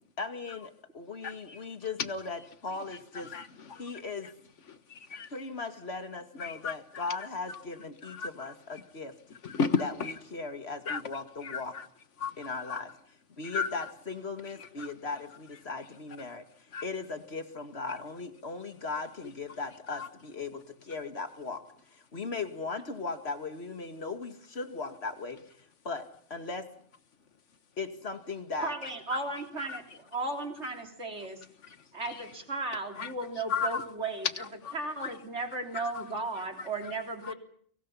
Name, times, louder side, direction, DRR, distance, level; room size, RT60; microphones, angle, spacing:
voice 1, 0.2-3.3 3.8-4.3 5.3-9.1 9.8-11.7 12.4-12.9 13.4-16.4 16.8-21.6 21.9-25.4 25.8-26.7 27.8-28.7, left 3 dB, 60° left, 7 dB, 2.4 m, -38 dB
voice 2, 1.2-1.6 3.3-3.8 4.7-5.3 6.4-7.1 7.5-7.6 8.0-8.3 9.4-10.1 10.9-11.0 11.4-11.9 12.2-12.3 12.7-12.8 13.4-13.9 14.6-14.9 16.7-16.8 19.9-20.1 28.8-29.2 29.6-29.8 31.6-31.8 32.0-32.2 33.0-33.1 33.5-33.9 34.6-34.7 35.0-35.1 35.7-35.8 36.6-36.7 37.2-37.3, left 5 dB, 85° left, 11 dB, 1.7 m, -34 dB
voice 3, 28.6-31.4 31.9-34.3 34.7-37.3, right 3 dB, 70° right, 4 dB, 3.7 m, -35 dB
30.0 x 24.5 x 5.7 m, 0.62 s
omnidirectional pair, 1.2 m